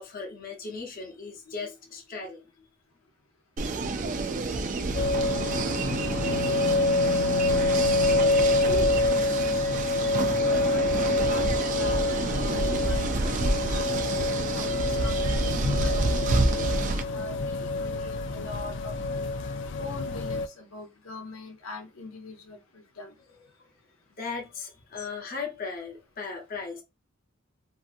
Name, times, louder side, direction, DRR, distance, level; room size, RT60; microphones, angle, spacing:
voice 1, 0.0-2.7 24.2-26.8, left 4 dB, 45° left, 0.8 m, -37 dB
sound 1, 3.6-17.0, right 3 dB, 40° right, 0.4 m, -29 dB
sound 2, 4.9-20.5, left 2 dB, 60° left, 0.3 m, -27 dB
voice 2, 8.2-13.9 14.5-16.1 16.4-19.3 19.8-23.1 25.0-25.1, left 2 dB, 90° left, 0.8 m, -42 dB
2.7 x 2.5 x 2.5 m
head